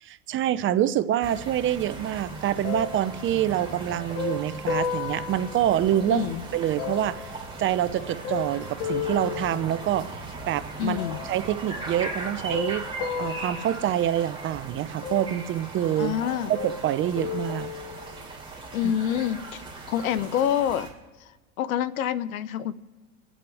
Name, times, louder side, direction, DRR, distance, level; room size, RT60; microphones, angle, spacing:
voice 1, 0.0-6.2 6.5-10.1 10.5-11.0 11.3-12.9 13.2-16.2 16.5-17.7, right 11 dB, 30° right, 14 dB, 0.6 m, -26 dB
sound 1, 1.2-20.9, right 3 dB, 10° right, 3.5 m, -39 dB
sound 2, 2.6-6.2 6.8-10.3 11.0-11.6 12.2-14.6 15.0-16.0 16.3-18.3 19.0-19.1, left 6 dB, 60° left, 2.1 m, -35 dB
voice 2, 6.1-6.4 10.8-11.2 16.0-16.5 18.7-19.6 19.9-20.9 21.6-22.7, left 10 dB, 80° left, 17 dB, 0.8 m, -26 dB
27.0 x 9.8 x 3.5 m, 1.3 s
hypercardioid pair, 110°, 41 cm